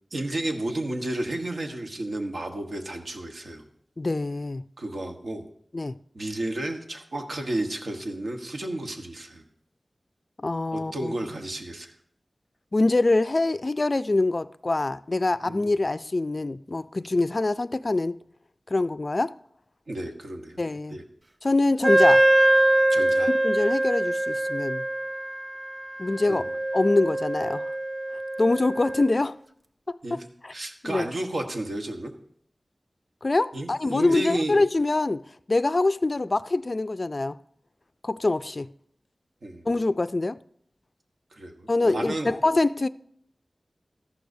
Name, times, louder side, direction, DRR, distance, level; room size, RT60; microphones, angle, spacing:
voice 1, 0.1-3.7 4.8-5.5 6.1-9.4 10.7-11.9 15.4-15.7 19.9-20.6 20.9-21.0 22.9-23.3 26.3-26.4 30.0-30.2 30.5-32.1 33.5-34.6 39.4-39.7 41.3-42.3, right 1 dB, 80° right, 1.2 m, -32 dB
voice 2, 4.0-4.6 5.7-5.9 10.4-11.1 12.7-18.2 18.7-19.3 20.6-21.0 21.4-22.2 23.2-24.8 26.0-26.4 26.7-27.7 28.4-29.3 29.9-30.5 30.8-31.1 33.2-35.2 35.5-37.4 38.0-38.7 39.7-40.4 41.7-42.9, left 2 dB, 45° left, 0.3 m, -24 dB
Wind instrument woodwind instrument, 21.8-29.2, right 1 dB, 30° right, 0.5 m, -23 dB
13.5 x 11.5 x 2.7 m
wide cardioid pair, 75°, 0 cm